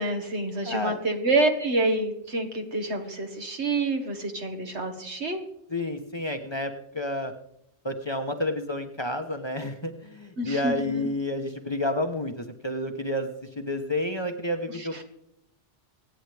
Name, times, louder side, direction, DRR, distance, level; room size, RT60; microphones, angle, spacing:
voice 1, 0.0-5.4 10.4-11.1, right 2 dB, 75° right, 5 dB, 1.9 m, -27 dB
voice 2, 0.6-1.0 5.7-7.3 7.8-13.3 13.6-15.1, left 1 dB, 25° left, 6 dB, 1.0 m, -30 dB
24.5 x 9.2 x 3.4 m, 0.79 s
omnidirectional pair, 1.2 m